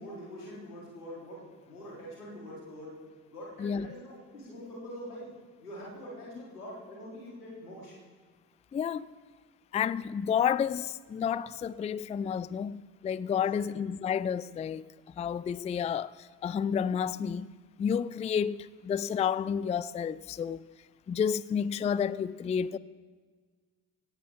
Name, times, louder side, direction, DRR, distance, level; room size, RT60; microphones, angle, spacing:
voice 1, 0.0-3.0 3.3-5.3 5.6-7.9 13.3-13.6, equal, 90° left, 3.9 m, -44 dB
voice 2, 8.7-9.1 9.7-14.9 15.2-17.5 17.8-20.7 21.1-22.8, left 7 dB, 15° left, 0.4 m, -30 dB
17.0 x 15.5 x 3.6 m
figure-of-eight pair, 45°, 44 cm